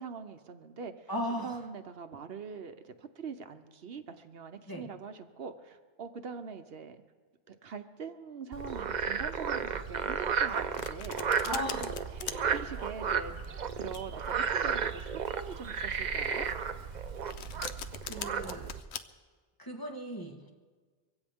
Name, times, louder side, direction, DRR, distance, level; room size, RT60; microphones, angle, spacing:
voice 1, 0.0-1.1 1.4-7.0 7.5-16.5, right 5 dB, 65° right, 8 dB, 1.0 m, -43 dB
voice 2, 1.1-1.6 4.7-4.9 11.5-11.9 18.0-18.7 19.6-20.5, equal, 20° left, 0 dB, 1.5 m, -37 dB
Frog, 8.5-18.8, right 6 dB, 50° right, 0.7 m, -33 dB
Domestic sounds home sounds, 10.3-19.0, left 8 dB, 80° left, 1.0 m, -43 dB
23.5 x 16.0 x 3.6 m, 1.5 s
omnidirectional pair, 1.1 m